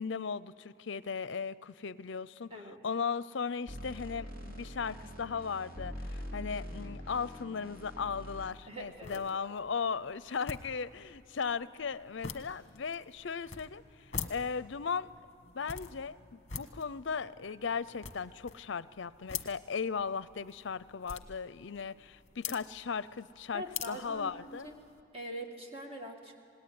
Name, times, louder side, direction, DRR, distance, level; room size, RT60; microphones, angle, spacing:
voice 1, 0.0-2.5 2.8-15.1 15.5-24.7, left 5 dB, 60° left, 18 dB, 0.5 m, -37 dB
sound 1, 3.7-8.5, equal, 45° right, 3.1 m, -44 dB
sound 2, 8.5-25.0, left 7 dB, 35° left, 1.2 m, -46 dB
voice 2, 8.7-9.5 23.5-24.7 25.1-26.3, equal, 30° right, 2 dB, 2.1 m, -43 dB
27.5 x 18.5 x 9.5 m, 2.6 s
head